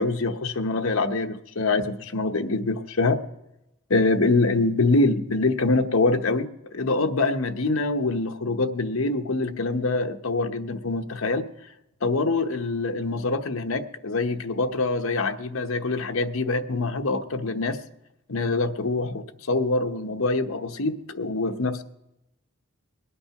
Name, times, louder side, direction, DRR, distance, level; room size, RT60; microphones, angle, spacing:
voice 1, 0.0-3.2 3.9-11.5 12.0-17.8 18.3-21.8, left 3 dB, 80° left, 7 dB, 1.0 m, -25 dB
21.5 x 8.8 x 5.9 m, 0.89 s
head